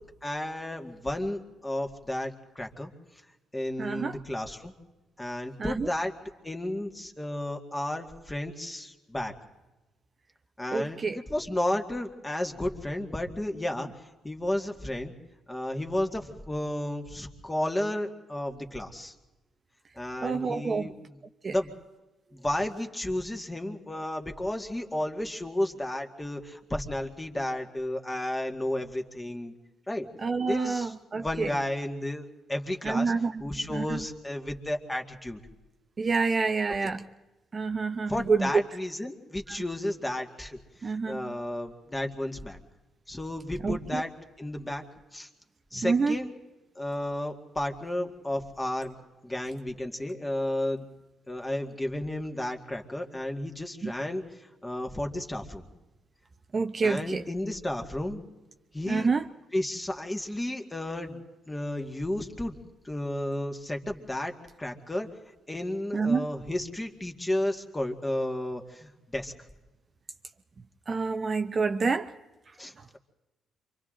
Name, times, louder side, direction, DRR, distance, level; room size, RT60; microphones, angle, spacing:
voice 1, 0.2-2.9 3.5-4.7 5.2-6.1 6.4-9.3 10.6-13.9 14.2-15.1 15.5-19.1 20.0-21.2 21.5-21.7 22.3-29.5 29.9-30.1 30.5-33.1 33.4-35.4 36.8-36.9 38.1-42.6 43.1-44.1 44.4-44.8 45.1-45.3 45.7-46.3 46.8-48.9 49.2-50.9 51.3-55.6 56.8-58.2 58.7-59.1 59.5-61.2 61.5-62.6 62.8-64.3 64.6-65.1 65.5-69.3 72.6-73.0, left 1 dB, 15° left, 3 dB, 2.0 m, -32 dB
voice 2, 3.8-4.2 5.6-5.9 10.7-11.2 20.2-20.9 21.4-21.5 30.2-31.5 32.8-33.4 33.7-34.0 36.0-37.0 37.5-38.5 40.8-41.3 43.6-44.0 45.8-46.2 53.8-53.9 56.5-57.2 58.9-59.3 65.9-66.3 70.9-72.1, right 4 dB, 35° right, 7 dB, 0.7 m, -28 dB
28.5 x 24.5 x 3.8 m, 1.1 s
cardioid pair, 90°, 0 cm